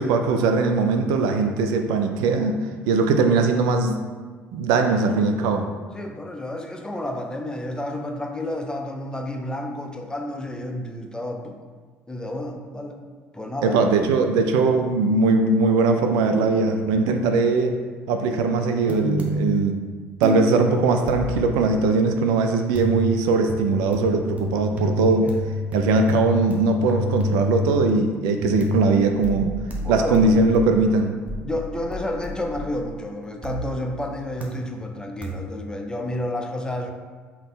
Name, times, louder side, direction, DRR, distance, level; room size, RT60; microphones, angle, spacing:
voice 1, 0.0-2.6 2.9-3.9 4.5-5.7 13.6-17.7 18.1-19.8 20.2-25.3 25.7-29.5 29.9-31.1, right 3 dB, 60° right, 5 dB, 0.3 m, -20 dB
voice 2, 5.9-11.6 12.1-13.0 13.3-13.8 25.2-25.4 29.8-30.3 31.4-36.9, left 1 dB, 10° left, 3 dB, 0.5 m, -30 dB
sound 1, 18.9-19.8 20.2-21.7 22.7-28.1 28.4-33.0 33.4-34.0 34.4-34.9 35.2-35.7, left 2 dB, 20° right, 0.8 m, -29 dB
3.7 x 2.9 x 3.6 m, 1.5 s
figure-of-eight pair, 55°, 7 cm